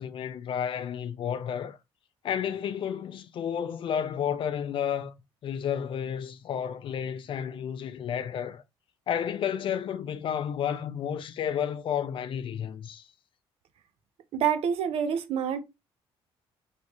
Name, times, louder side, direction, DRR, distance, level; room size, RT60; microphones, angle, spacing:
voice 1, 0.0-1.8 2.2-5.1 5.4-8.6 9.1-13.1, left 8 dB, 55° left, 0.5 m, -31 dB
voice 2, 14.3-15.6, right 8 dB, 65° right, 0.7 m, -27 dB
3.2 x 3.0 x 3.0 m
cardioid pair, 105°, 11 cm